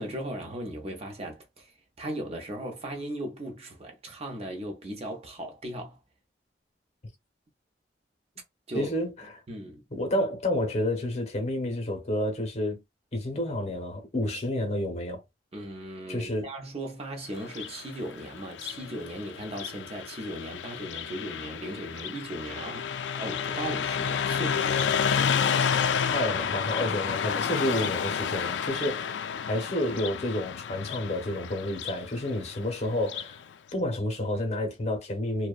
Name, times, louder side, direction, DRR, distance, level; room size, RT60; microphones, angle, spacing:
voice 1, 0.0-1.7 2.0-6.0 8.7-8.9 9.5-9.8 15.5-22.9 23.2-25.0 26.9-27.2, right 1 dB, 35° right, 0.6 m, -37 dB
voice 2, 8.8-9.1 9.9-12.8 13.1-15.2 16.1-16.5 26.1-29.1 29.5-33.4 33.7-35.5, left 1 dB, 40° left, 0.8 m, -30 dB
Car passing by, 17.4-33.4, left 7 dB, 80° left, 0.3 m, -30 dB
2.7 x 2.1 x 2.3 m
head